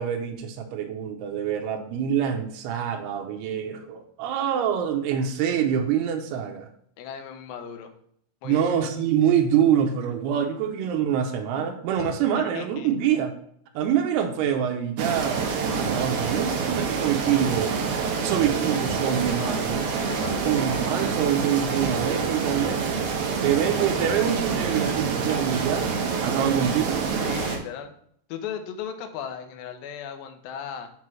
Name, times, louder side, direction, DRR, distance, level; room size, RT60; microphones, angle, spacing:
voice 1, 0.0-6.7 8.4-13.3 13.8-15.5 15.8-17.7 18.2-19.8 20.4-23.0 23.4-25.8 26.2-27.0, right 9 dB, 90° right, 4 dB, 2.8 m, -25 dB
voice 2, 7.0-7.9 8.4-8.8 12.0-12.9 19.1-20.9 27.2-27.9 28.3-30.9, left 8 dB, 75° left, 5 dB, 2.4 m, -37 dB
sound 1, 15.0-27.6, right 5 dB, 70° right, 2.0 m, -27 dB
7.6 x 3.1 x 6.0 m, 0.65 s
omnidirectional pair, 4.6 m